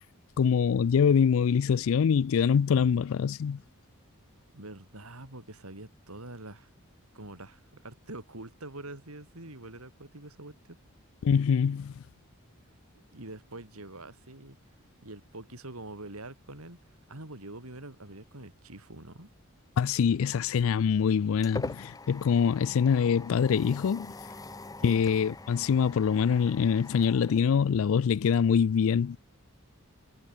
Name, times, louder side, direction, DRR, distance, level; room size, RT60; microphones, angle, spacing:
voice 1, 0.4-3.6 11.2-12.0 19.8-24.1 24.8-29.2, left 7 dB, 70° left, 0.4 m, -24 dB
voice 2, 4.5-6.7 7.1-10.8 13.1-14.6 15.0-16.8 17.1-19.3 24.8-25.0, right 2 dB, 85° right, 4.5 m, -45 dB
sound 1, 21.0-28.1, left 2 dB, 15° left, 1.1 m, -44 dB
head